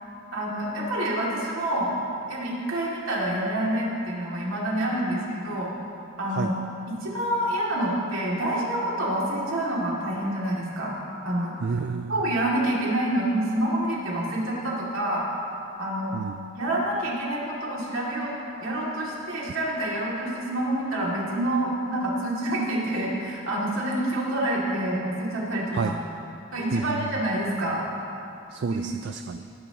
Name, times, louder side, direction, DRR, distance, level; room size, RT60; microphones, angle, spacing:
voice 1, 0.3-2.0 2.3-5.7 6.2-6.6 6.9-11.0 11.2-11.6 12.1-15.3 15.8-16.1 16.5-25.9 26.5-27.9 28.6-28.9, right 1 dB, 75° right, -4 dB, 2.5 m, -27 dB
voice 2, 11.6-12.1 16.1-16.4 25.7-26.0 26.7-27.1 28.5-29.5, right 5 dB, 55° right, 8 dB, 0.3 m, -29 dB
19.0 x 10.5 x 3.0 m, 2.7 s
head